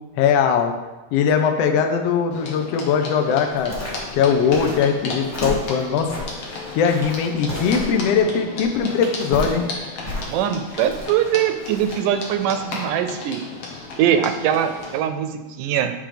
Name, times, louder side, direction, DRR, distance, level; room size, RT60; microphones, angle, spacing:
voice 1, 0.2-0.7 1.1-3.8 4.1-6.1 6.7-9.7, left 6 dB, 80° left, 4 dB, 1.4 m, -20 dB
sound 1, 2.3-15.0, left 3 dB, 60° left, 1.4 m, -35 dB
sound 2, 3.5-12.3 12.6-12.7, left 1 dB, 10° left, 0.7 m, -33 dB
voice 2, 10.3-13.4 14.0-15.9, right 9 dB, 85° right, 9 dB, 2.1 m, -22 dB
7.5 x 3.5 x 5.0 m, 1.1 s
omnidirectional pair, 3.6 m